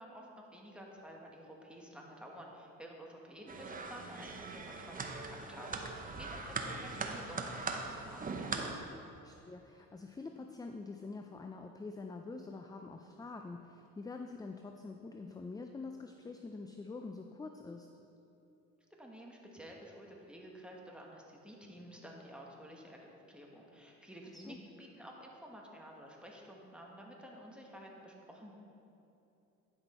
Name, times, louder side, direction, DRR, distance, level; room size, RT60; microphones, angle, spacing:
voice 1, 0.0-8.2 19.0-23.0 23.3-28.5, equal, 5° right, -1 dB, 1.4 m, -51 dB
sound 1, 3.5-8.8, right 3 dB, 30° right, 0.8 m, -40 dB
voice 2, 9.2-17.9 24.3-24.6, left 3 dB, 15° left, 5 dB, 0.3 m, -46 dB
9.9 x 6.0 x 4.3 m, 2.9 s
cardioid pair, 90°, 30 cm